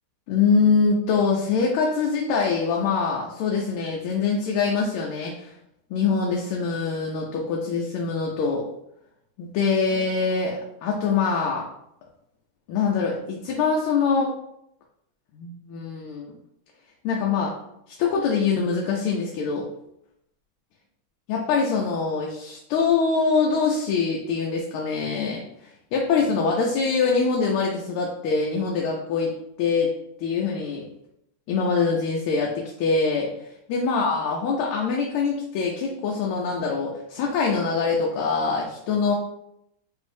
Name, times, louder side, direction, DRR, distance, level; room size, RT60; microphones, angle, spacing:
voice 1, 0.3-5.5 5.9-8.6 9.4-11.6 12.7-14.3 15.3-16.3 17.0-17.5 17.9-19.7 21.3-29.3 29.6-29.9 30.2-30.9 31.5-33.3 33.7-39.1, left 5 dB, 85° left, -1 dB, 1.5 m, -24 dB
6.3 x 2.7 x 2.6 m, 0.79 s
omnidirectional pair, 2.3 m